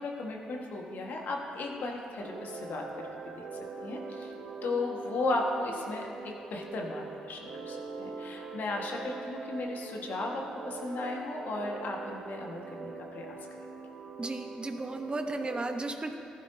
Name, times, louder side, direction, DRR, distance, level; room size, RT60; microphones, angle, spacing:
voice 1, 0.0-2.8 3.2-3.4 3.8-4.3 4.6-13.4, left 2 dB, 65° left, 0 dB, 1.6 m, -35 dB
sound 1, 2.2-15.6, right 4 dB, 65° right, 1.3 m, -43 dB
voice 2, 14.2-16.1, right 2 dB, 30° right, 5 dB, 1.0 m, -34 dB
15.0 x 12.0 x 2.8 m, 2.6 s
hypercardioid pair, 45°, 3 cm